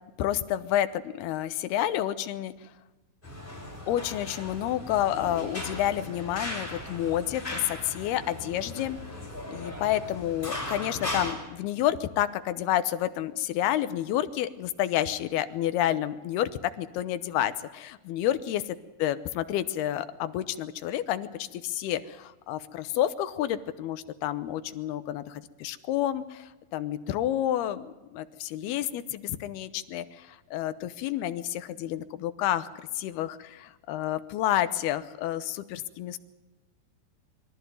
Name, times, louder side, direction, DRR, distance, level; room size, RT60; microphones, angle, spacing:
voice 1, 0.2-2.5 3.9-9.0 9.5-27.9 28.1-32.7 32.9-36.2, left 12 dB, 75° left, 13 dB, 2.8 m, -29 dB
sound 1, 3.2-11.3, left 1 dB, 10° left, 5.5 m, -37 dB
23.5 x 14.0 x 9.3 m, 1.1 s
omnidirectional pair, 4.9 m